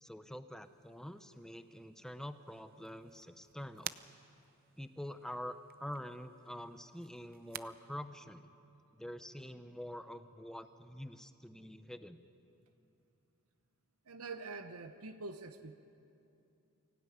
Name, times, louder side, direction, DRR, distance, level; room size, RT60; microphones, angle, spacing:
voice 1, 0.0-4.0 4.8-8.5 9.0-12.2, equal, 5° left, 10 dB, 0.8 m, -46 dB
sound 1, 0.6-7.6, right 11 dB, 40° right, 0.5 m, -52 dB
voice 2, 14.1-15.7, right 3 dB, 80° right, 8 dB, 0.9 m, -45 dB
24.0 x 16.5 x 9.4 m, 2.7 s
head